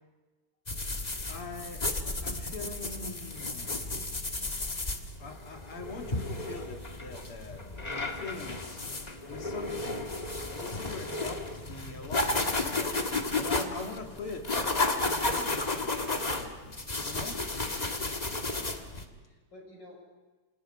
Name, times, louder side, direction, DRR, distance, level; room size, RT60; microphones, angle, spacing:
sound 1, 0.7-19.0, left 2 dB, 20° left, 1.5 m, -33 dB
voice 1, 1.3-1.9 2.2-3.8 5.2-8.8 9.3-10.1 10.5-13.0 13.3-16.7 17.0-17.4, left 4 dB, 80° left, 3 dB, 3.1 m, -43 dB
voice 2, 17.6-20.0, left 1 dB, 50° left, 1 dB, 6.7 m, -53 dB
28.0 x 27.5 x 5.6 m, 1.3 s
omnidirectional pair, 2.4 m